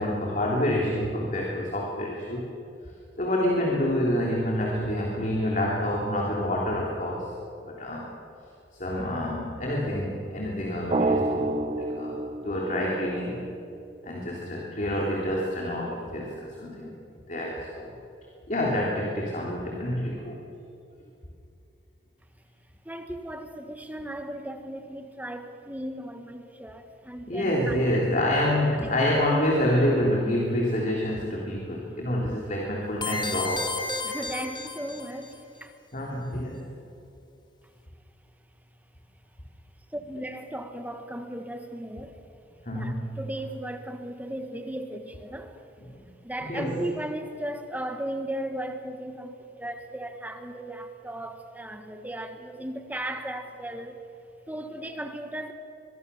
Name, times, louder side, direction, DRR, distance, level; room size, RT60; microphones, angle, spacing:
voice 1, 0.0-2.4 3.2-7.3 7.7-8.1 8.7-12.2 12.4-13.5 14.0-16.9 17.3-17.9 18.5-20.4 27.3-33.7 35.9-36.7 42.6-43.2 46.4-46.9, left 1 dB, 45° left, -2 dB, 3.4 m, -27 dB
Drum, 10.9-13.5, right 2 dB, 30° right, 0.7 m, -28 dB
voice 2, 22.8-28.1 28.7-28.9 31.4-32.0 34.0-35.7 39.9-42.2 42.7-45.6 46.0-54.0 54.5-55.5, right 1 dB, 10° right, 6 dB, 1.3 m, -36 dB
sound 1, 33.0-35.3, left 2 dB, 25° left, 2.0 m, -32 dB
24.0 x 22.5 x 7.0 m, 2.7 s
head